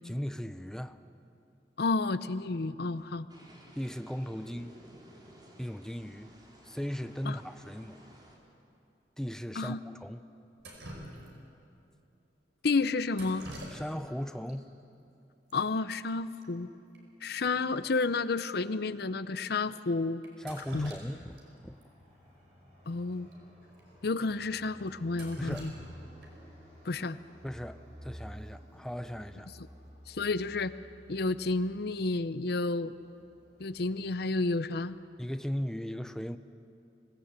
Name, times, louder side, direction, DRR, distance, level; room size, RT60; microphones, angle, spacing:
voice 1, 0.0-1.0 3.8-4.7 5.6-6.3 6.6-8.0 9.2-10.2 13.7-14.7 20.4-21.8 25.4-25.8 27.4-29.5 35.2-36.4, equal, 5° left, 10 dB, 0.5 m, -37 dB
voice 2, 1.8-3.3 7.3-7.4 9.6-9.8 12.6-13.4 15.5-16.7 17.2-20.2 20.7-20.9 22.9-23.3 24.0-25.7 26.9-27.2 30.1-30.7 31.1-32.9 33.6-35.0, left 3 dB, 60° left, 14 dB, 0.6 m, -31 dB
sound 1, 3.3-8.4, equal, 25° right, 3.6 m, -54 dB
Drip, 10.6-11.6 13.1-14.2 14.5-14.6 15.5-15.6 15.8-16.1 16.4-16.5 16.9-17.0 17.5-17.6 18.1-18.2 18.9-19.1 20.2-21.4 21.8-21.9 23.2-23.3 23.7-23.8 24.3-24.4 24.9-26.5 28.5-28.8 29.2-29.6, right 1 dB, 80° right, 4.9 m, -46 dB
Fixed-wing aircraft airplane, 21.3-34.8, equal, 40° right, 7.8 m, -53 dB
25.5 x 17.5 x 8.2 m, 2.7 s
head